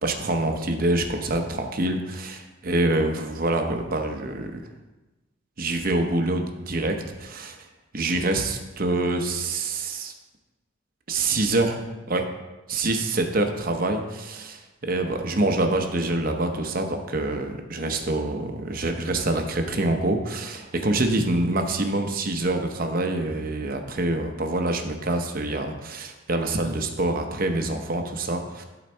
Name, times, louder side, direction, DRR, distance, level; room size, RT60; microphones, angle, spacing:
voice 1, 0.0-4.6 5.6-7.6 7.9-10.1 11.1-12.2 12.7-28.6, right 2 dB, 45° right, 5 dB, 0.8 m, -26 dB
12.0 x 4.0 x 4.4 m, 1.1 s
head